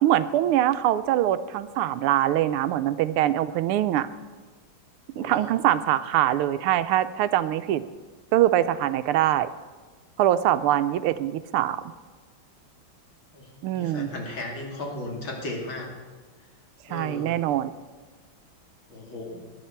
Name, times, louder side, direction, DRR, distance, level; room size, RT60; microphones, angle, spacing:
voice 1, 0.0-4.1 5.2-7.8 8.3-9.5 10.2-11.8 13.6-14.1 16.9-17.7, right 12 dB, 85° right, 13 dB, 1.5 m, -23 dB
voice 2, 5.1-5.5 13.3-15.9 16.9-17.4 18.9-19.4, left 2 dB, 65° left, -1 dB, 3.4 m, -36 dB
20.0 x 10.5 x 4.5 m, 1.4 s
omnidirectional pair, 2.3 m